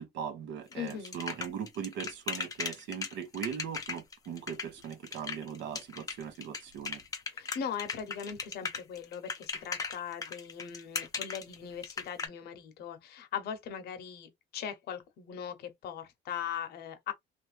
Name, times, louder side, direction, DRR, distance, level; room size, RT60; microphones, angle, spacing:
voice 1, 0.0-7.0, right 8 dB, 60° right, 0.8 m, -39 dB
voice 2, 0.7-1.1 7.3-17.1, left 8 dB, 50° left, 0.8 m, -40 dB
sound 1, 0.7-12.3, left 5 dB, 15° left, 0.7 m, -37 dB
3.2 x 2.5 x 3.2 m
cardioid pair, 180°, 21 cm